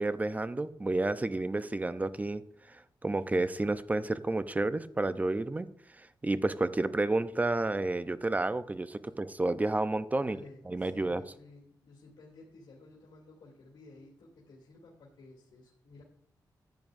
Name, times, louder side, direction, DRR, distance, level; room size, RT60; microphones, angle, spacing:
voice 1, 0.0-5.7 6.0-10.4 10.7-11.2, right 2 dB, 20° right, 13 dB, 0.7 m, -31 dB
voice 2, 10.2-16.0, left 3 dB, 85° left, -5 dB, 2.8 m, -54 dB
14.0 x 9.3 x 2.7 m, 0.66 s
cardioid pair, 75°, 8 cm